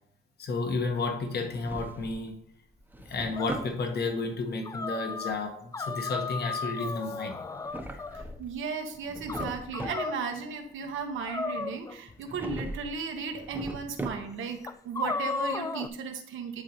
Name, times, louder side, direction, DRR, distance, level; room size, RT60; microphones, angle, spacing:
voice 1, 0.4-2.3 3.0-7.3 7.8-8.0, left 3 dB, 55° left, 3 dB, 1.4 m, -32 dB
Drawer open or close, 1.3-2.3 2.7-3.8 7.4-8.6 8.9-10.1 12.2-12.9 13.3-14.5, right 1 dB, 10° right, 0.8 m, -39 dB
sound 1, 3.4-3.6 4.6-5.4 5.7-8.3 9.3-10.2 11.3-12.2 13.2-13.3 13.8-13.9 14.6-15.9, left 4 dB, 15° left, 0.3 m, -34 dB
voice 2, 8.1-16.6, right 5 dB, 80° right, 4 dB, 1.2 m, -35 dB
10.5 x 3.8 x 3.1 m, 0.75 s
cardioid pair, 90°, 20 cm